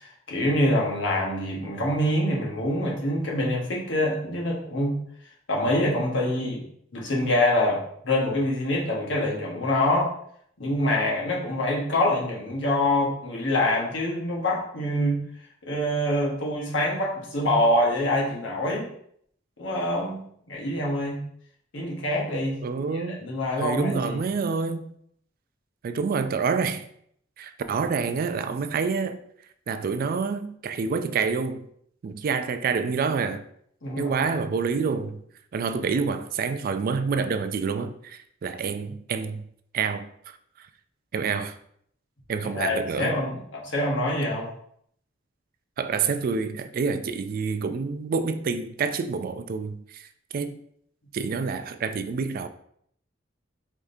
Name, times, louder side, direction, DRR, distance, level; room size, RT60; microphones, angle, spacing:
voice 1, 0.0-5.0 5.5-6.6 6.9-10.1 10.6-15.2 15.6-18.9 19.6-20.2 20.5-21.2 21.7-22.6 22.9-24.2 33.8-34.3 42.5-44.5, left 1 dB, 70° left, 1.3 m, -25 dB
voice 2, 22.6-23.2 23.6-24.9 25.8-26.8 27.4-29.2 29.7-31.6 32.0-33.4 34.0-35.2 35.5-39.4 39.7-40.0 41.1-41.5 42.3-43.2 45.8-50.0 50.3-50.6 51.1-52.5, right 5 dB, 50° right, 0.3 m, -27 dB
4.8 x 3.5 x 2.7 m
head